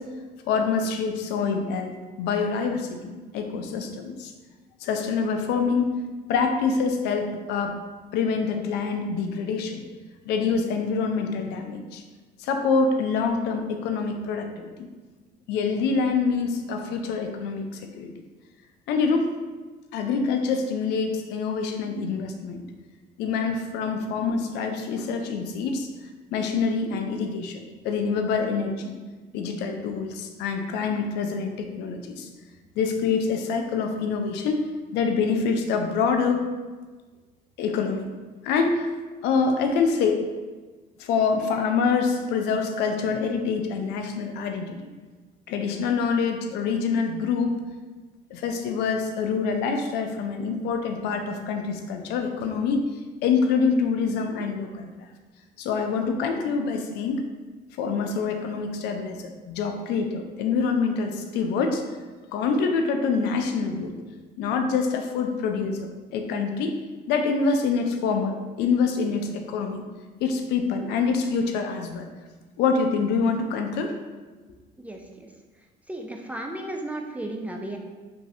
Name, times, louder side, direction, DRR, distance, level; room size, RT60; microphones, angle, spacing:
voice 1, 0.0-4.3 4.8-5.9 6.3-7.8 8.1-9.8 10.3-12.0 12.4-14.7 15.5-18.1 18.9-19.3 19.9-22.6 23.2-25.9 26.3-29.0 29.3-32.3 32.8-36.5 37.6-38.1 38.4-38.9 39.2-40.3 41.0-44.8 45.5-47.6 48.3-52.9 53.2-54.9 55.6-57.2 57.8-61.8 62.3-63.9 64.4-66.8 67.1-69.8 70.2-72.1 72.6-73.9, left 5 dB, 85° left, 5 dB, 0.4 m, -26 dB
voice 2, 74.8-75.3 75.9-77.8, right 1 dB, 10° right, 1 dB, 0.3 m, -34 dB
3.1 x 2.6 x 2.6 m, 1.3 s
cardioid pair, 110°, 17 cm